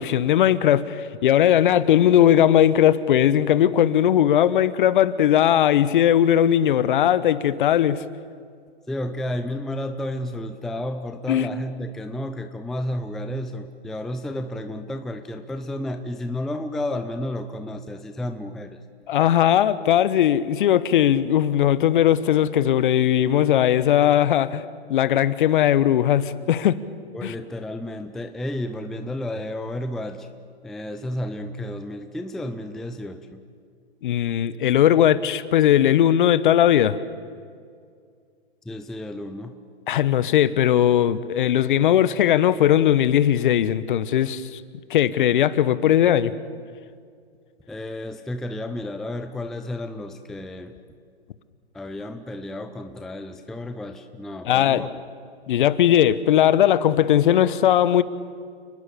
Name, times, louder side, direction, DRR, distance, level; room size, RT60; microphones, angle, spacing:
voice 1, 0.0-8.0 11.3-11.5 19.1-24.6 24.9-26.8 27.2-27.3 34.0-37.0 39.9-44.6 44.9-46.3 54.5-54.8 55.5-58.0, left 11 dB, 50° left, 15 dB, 1.2 m, -19 dB
voice 2, 8.9-18.8 27.1-30.3 30.6-33.4 38.6-39.6 47.7-50.7 51.7-55.0, left 1 dB, ahead, 7 dB, 0.5 m, -32 dB
29.5 x 20.5 x 6.9 m, 2.2 s
hypercardioid pair, 135°, 32 cm